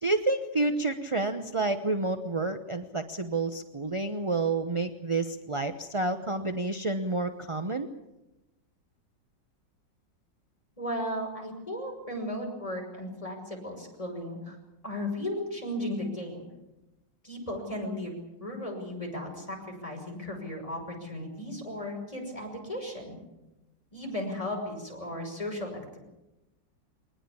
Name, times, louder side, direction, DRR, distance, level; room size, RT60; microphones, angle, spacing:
voice 1, 0.0-7.9, right 2 dB, 30° right, 8 dB, 0.6 m, -29 dB
voice 2, 10.8-14.6 14.8-16.4 17.2-23.2 23.9-26.0, left 1 dB, 20° left, 1 dB, 6.2 m, -35 dB
23.0 x 19.5 x 8.5 m, 0.97 s
omnidirectional pair, 2.0 m